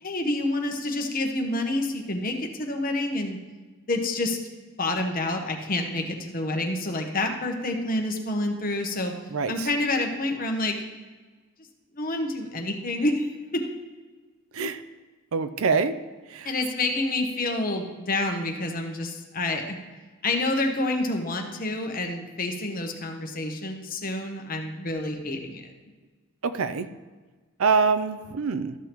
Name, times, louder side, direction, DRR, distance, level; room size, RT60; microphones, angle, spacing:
voice 1, 0.0-3.4 3.9-4.4 4.8-9.1 9.5-10.8 11.9-13.6 16.4-19.8 20.2-25.7, left 2 dB, 40° left, 3 dB, 1.0 m, -28 dB
voice 2, 9.3-9.7 14.5-14.8 15.3-15.9 16.3-16.5 26.4-26.9 27.6-28.7, right 5 dB, 75° right, 11 dB, 0.5 m, -25 dB
13.0 x 6.9 x 3.0 m, 1.4 s
head